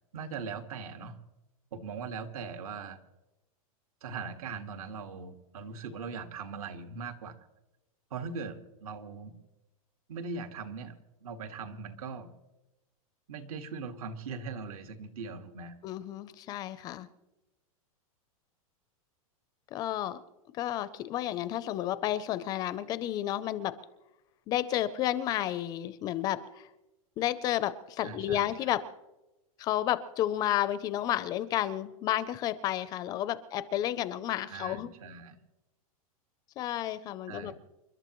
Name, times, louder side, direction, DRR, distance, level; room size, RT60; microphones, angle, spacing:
voice 1, 0.1-1.2 1.7-3.0 4.0-7.5 8.1-9.4 10.1-12.3 13.3-15.8 28.0-28.5 34.5-35.4 37.3-37.6, right 5 dB, 75° right, 7 dB, 1.8 m, -40 dB
voice 2, 15.8-17.1 19.7-20.2 20.5-23.8 24.5-26.7 27.2-28.8 29.6-34.9 36.6-37.5, left 12 dB, 20° left, 14 dB, 0.4 m, -31 dB
29.0 x 12.0 x 3.0 m, 1.0 s
supercardioid pair, 165°, 19 cm